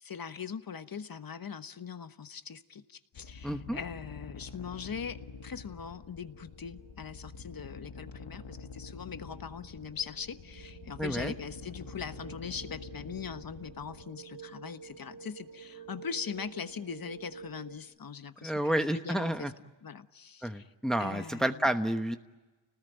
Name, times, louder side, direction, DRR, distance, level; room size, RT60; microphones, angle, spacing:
voice 1, 0.0-19.5 19.8-20.7 21.0-21.7, left 6 dB, 50° left, 10 dB, 1.3 m, -41 dB
sound 1, 3.1-14.1, left 5 dB, 80° left, 1.7 m, -47 dB
voice 2, 3.4-3.8 11.0-11.3 18.4-19.5 20.4-22.2, right 1 dB, ahead, 7 dB, 1.1 m, -30 dB
sound 2, 4.7-17.8, right 7 dB, 60° right, 3.9 m, -52 dB
30.0 x 19.5 x 9.2 m, 1.2 s
wide cardioid pair, 95°, 45 cm